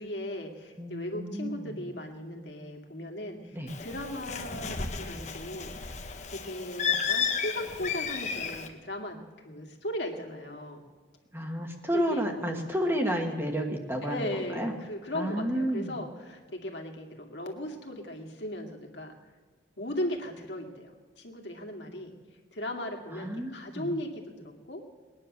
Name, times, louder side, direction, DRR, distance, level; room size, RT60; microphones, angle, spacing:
voice 1, 0.0-6.0 6.3-10.8 11.9-12.3 14.0-19.1 19.8-22.2 22.5-24.9, left 1 dB, 70° left, 2 dB, 2.2 m, -37 dB
voice 2, 0.8-1.8 3.5-3.7 11.3-14.7 15.1-16.0 23.1-23.9, equal, 15° right, 3 dB, 1.4 m, -31 dB
Bird, 3.7-8.7, left 6 dB, 40° left, 1.1 m, -33 dB
20.5 x 9.9 x 6.6 m, 1.4 s
head